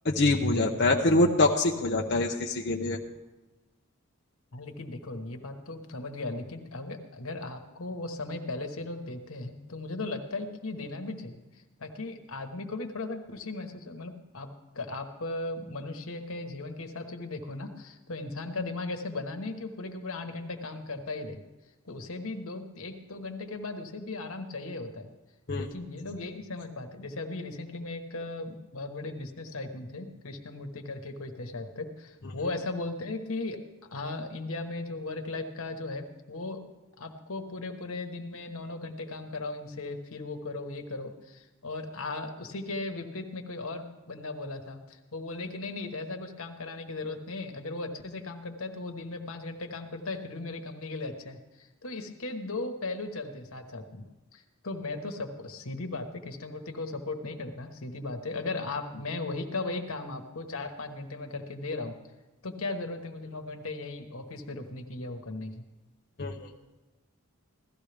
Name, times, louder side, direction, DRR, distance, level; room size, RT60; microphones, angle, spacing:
voice 1, 0.0-3.0 25.5-25.7 66.2-66.5, left 2 dB, 50° left, 0 dB, 0.7 m, -24 dB
voice 2, 4.5-14.5 14.7-21.4 21.8-25.1 25.6-33.6 33.9-54.1 54.3-62.0 62.4-65.6, left 2 dB, 80° left, 5 dB, 1.3 m, -37 dB
16.5 x 13.0 x 3.4 m, 1.1 s
head